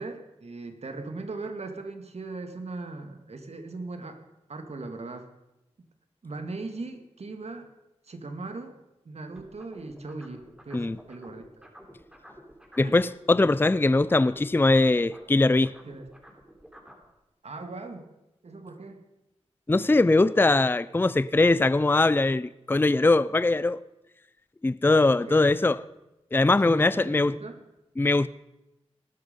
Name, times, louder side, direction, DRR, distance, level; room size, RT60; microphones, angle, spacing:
voice 1, 0.0-4.2 4.5-5.3 6.2-7.7 8.1-8.8 9.1-11.7 12.8-12.9 15.9-16.1 17.4-18.1 18.4-19.0 25.1-25.6 26.6-27.6, right 3 dB, 65° right, 2.1 m, -39 dB
sound 1, 9.4-13.0 13.3-17.1, equal, 5° right, 3.5 m, -50 dB
voice 2, 12.8-15.7 19.7-23.8 24.6-25.8 26.3-27.3 28.0-28.3, left 2 dB, 20° left, 0.5 m, -21 dB
19.0 x 12.0 x 5.3 m
cardioid pair, 55°, 12 cm